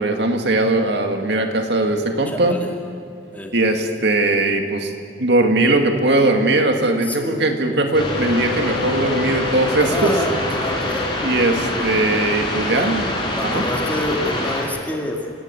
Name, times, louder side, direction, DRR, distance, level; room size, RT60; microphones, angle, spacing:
voice 1, 0.0-2.6 3.5-4.9 5.2-10.2 11.2-13.1 13.4-13.6, right 2 dB, 65° right, 4 dB, 2.2 m, -19 dB
voice 2, 2.3-2.7 3.3-3.5 7.1-7.5 9.8-11.1 12.7-12.9 13.3-15.2, left 1 dB, 10° left, 1 dB, 2.3 m, -27 dB
sound 1, 7.9-14.6, left 2 dB, 25° left, 5.3 m, -24 dB
28.0 x 16.5 x 8.3 m, 2.6 s
head